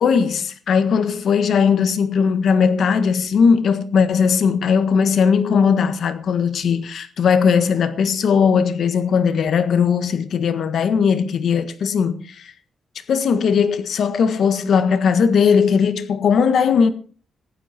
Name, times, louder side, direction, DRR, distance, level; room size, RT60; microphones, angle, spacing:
voice 1, 0.0-12.5 13.1-16.9, left 6 dB, 70° left, 1.5 m, -18 dB
15.0 x 11.0 x 4.4 m
cardioid pair, 115°, 0 cm